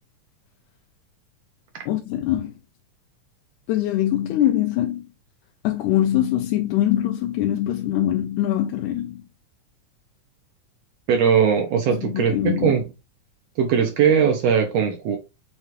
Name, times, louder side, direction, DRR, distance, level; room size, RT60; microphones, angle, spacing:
voice 1, 1.9-2.5 3.7-5.0 5.6-9.2 11.9-12.7, left 12 dB, 85° left, 2.0 m, -23 dB
voice 2, 11.1-12.8 13.6-15.2, right 7 dB, 70° right, 1.7 m, -19 dB
6.6 x 2.4 x 2.9 m
omnidirectional pair, 3.4 m